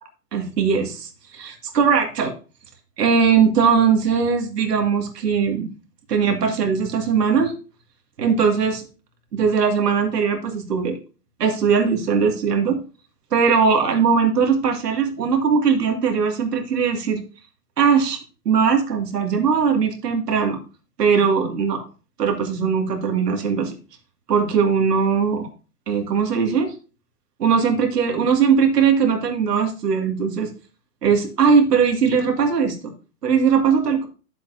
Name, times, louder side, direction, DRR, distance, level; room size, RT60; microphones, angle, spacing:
voice 1, 0.3-2.3 3.0-5.7 6.1-7.5 8.2-8.8 9.3-11.0 11.4-12.8 13.3-17.2 17.8-18.2 18.4-20.6 21.0-21.8 22.2-23.8 24.3-25.5 25.9-26.7 27.4-30.5 31.0-32.9 33.2-34.1, right 6 dB, 75° right, 4 dB, 2.4 m, -19 dB
10.5 x 7.5 x 2.7 m, 0.35 s
hypercardioid pair, 120°, 48 cm